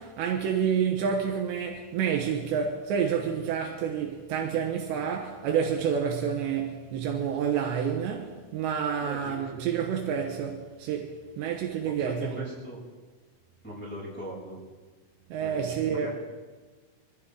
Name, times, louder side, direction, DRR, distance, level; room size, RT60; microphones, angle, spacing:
voice 1, 0.0-12.5 15.3-16.1, right 7 dB, 75° right, 3.2 m, -29 dB
voice 2, 9.0-9.3 11.8-12.8 13.6-14.6 15.4-16.1, equal, ahead, 6.5 m, -40 dB
23.5 x 14.5 x 3.8 m
omnidirectional pair, 5.3 m